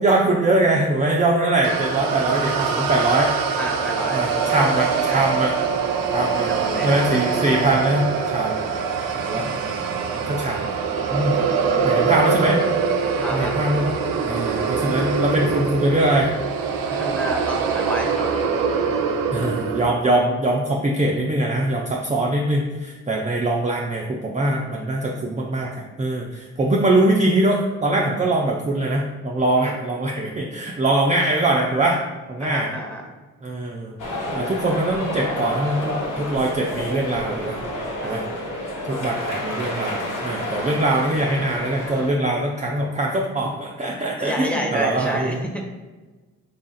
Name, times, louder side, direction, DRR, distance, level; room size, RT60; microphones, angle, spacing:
voice 1, 0.0-3.3 4.1-5.5 6.1-6.5 6.8-8.6 9.3-9.5 10.2-10.8 11.1-11.3 11.8-12.6 13.3-14.0 14.2-16.3 19.3-32.0 32.3-32.7 33.4-34.0 34.3-37.6 38.0-38.2 38.9-45.5, right 2 dB, 20° right, -1 dB, 0.5 m, -22 dB
sound 1, 1.6-19.9, right 5 dB, 75° right, 0.5 m, -24 dB
voice 2, 3.6-5.3 6.3-7.4 13.0-13.5 16.9-18.4 29.6-29.8 32.4-33.0 38.0-38.2 38.9-39.3 44.2-45.6, equal, 5° left, 0 dB, 0.9 m, -29 dB
sound 2, 34.0-42.1, left 1 dB, 60° left, 0.9 m, -29 dB
3.5 x 2.4 x 3.9 m, 1.2 s
supercardioid pair, 50°, 35 cm